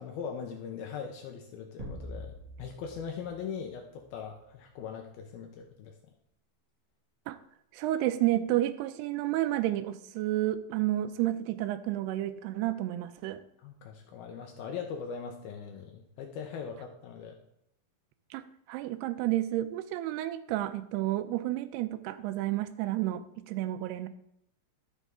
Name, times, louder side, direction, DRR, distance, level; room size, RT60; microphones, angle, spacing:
voice 1, 0.0-2.3 2.6-5.9 13.6-17.4, left 6 dB, 75° left, 2 dB, 2.7 m, -40 dB
sound 1, 1.8-4.4, equal, 50° right, 3.3 m, -45 dB
voice 2, 7.7-13.4 18.3-24.1, right 14 dB, 90° right, 9 dB, 2.7 m, -31 dB
12.5 x 8.1 x 3.7 m, 0.76 s
omnidirectional pair, 4.6 m